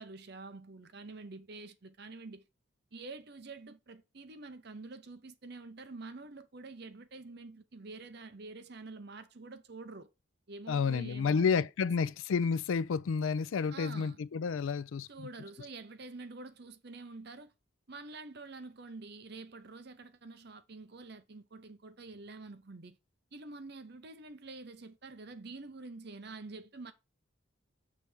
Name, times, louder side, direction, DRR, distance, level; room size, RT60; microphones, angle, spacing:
voice 1, 0.0-2.4 2.9-10.1 10.5-11.7 13.7-14.2 15.1-17.5 17.9-23.0 23.3-26.9, right 3 dB, 55° right, 0.7 m, -47 dB
voice 2, 10.7-15.3, left 5 dB, 75° left, 0.4 m, -30 dB
6.8 x 3.4 x 6.1 m
head